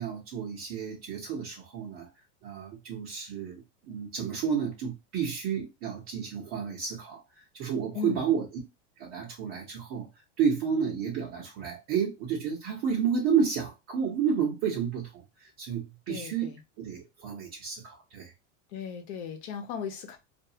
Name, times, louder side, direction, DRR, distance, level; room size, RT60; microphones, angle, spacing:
voice 1, 0.0-2.1 2.4-7.2 7.5-8.5 9.0-10.1 10.4-18.3, right 7 dB, 45° right, 1.0 m, -31 dB
voice 2, 7.9-8.3 16.1-16.6 18.7-20.2, left 7 dB, 60° left, 0.9 m, -36 dB
2.6 x 2.3 x 2.7 m
supercardioid pair, 135°, 37 cm